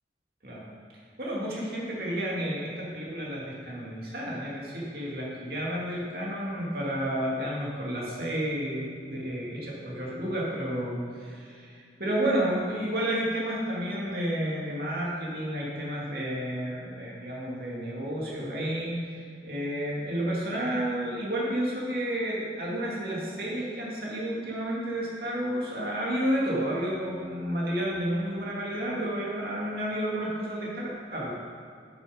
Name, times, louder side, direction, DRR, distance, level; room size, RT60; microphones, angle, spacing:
voice 1, 1.2-31.3, right 1 dB, 55° right, -5 dB, 2.5 m, -31 dB
8.7 x 8.6 x 5.2 m, 2.3 s
head